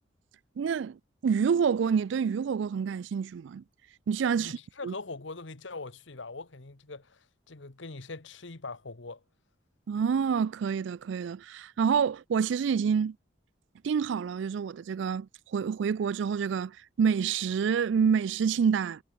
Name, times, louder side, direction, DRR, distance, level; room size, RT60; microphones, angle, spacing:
voice 1, 0.6-1.0 1.2-3.6 4.1-4.6 4.8-4.9 9.9-13.2 13.8-19.0, right 6 dB, 70° right, 0.3 m, -27 dB
voice 2, 4.4-9.2, left 3 dB, 75° left, 1.4 m, -42 dB
head